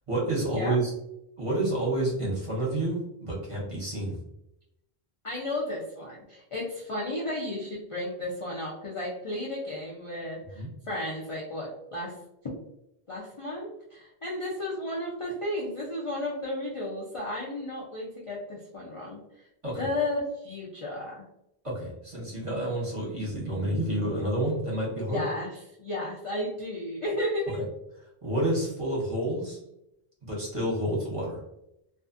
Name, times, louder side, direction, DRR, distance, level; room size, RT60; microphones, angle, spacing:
voice 1, 0.1-0.9 1.4-4.2 10.5-10.7 19.6-19.9 21.6-25.2 28.2-29.6 30.3-31.4, right 1 dB, 35° right, -5 dB, 0.8 m, -29 dB
voice 2, 5.2-12.1 13.1-19.2 19.8-21.2 25.1-27.6, left 1 dB, 45° left, -4 dB, 0.4 m, -33 dB
2.4 x 2.4 x 2.4 m, 0.82 s
omnidirectional pair, 1.1 m